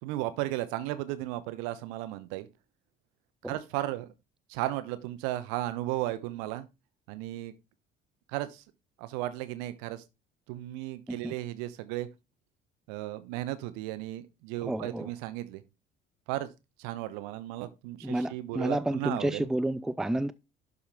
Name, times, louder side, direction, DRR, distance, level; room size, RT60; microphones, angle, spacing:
voice 1, 0.0-2.5 3.5-4.1 4.5-6.7 7.1-7.5 8.3-8.6 9.0-10.0 10.5-12.1 12.9-15.6 16.3-16.5 16.8-19.5, right 15 dB, 60° right, 1.2 m, -35 dB
voice 2, 14.6-15.1 18.0-20.3, right 1 dB, ahead, 0.6 m, -30 dB
12.0 x 5.6 x 4.3 m
figure-of-eight pair, 55°, 30 cm